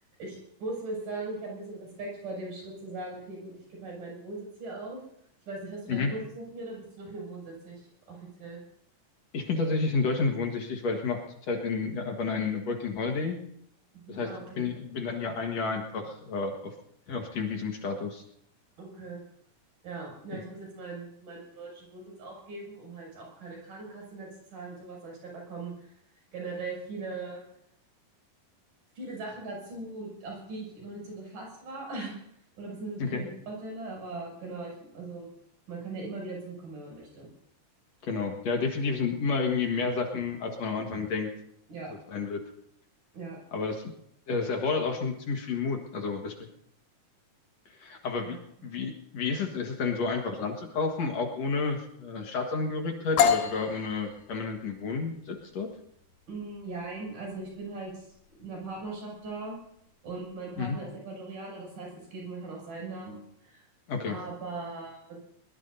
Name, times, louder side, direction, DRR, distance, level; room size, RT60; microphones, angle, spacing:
voice 1, 0.2-5.0 5.5-8.6 13.9-14.7 18.8-19.2 19.8-25.9 26.3-27.4 29.0-32.2 32.6-35.3 35.7-37.3 41.7-41.9 43.1-43.4 48.2-48.4 56.3-58.1 58.4-59.6 60.0-63.7 64.1-65.2, right 3 dB, 80° right, -2 dB, 8.5 m, -40 dB
voice 2, 9.3-13.4 14.1-16.7 17.1-18.2 20.3-20.4 33.0-33.2 38.0-41.3 42.1-42.4 43.5-43.8 44.3-46.3 47.7-48.4 48.6-55.7 60.6-60.8 63.9-64.2, left 4 dB, 55° left, 3 dB, 2.5 m, -30 dB
sound 1, 53.2-60.8, left 7 dB, 75° left, 2.7 m, -32 dB
21.5 x 21.0 x 2.7 m, 0.73 s
omnidirectional pair, 3.8 m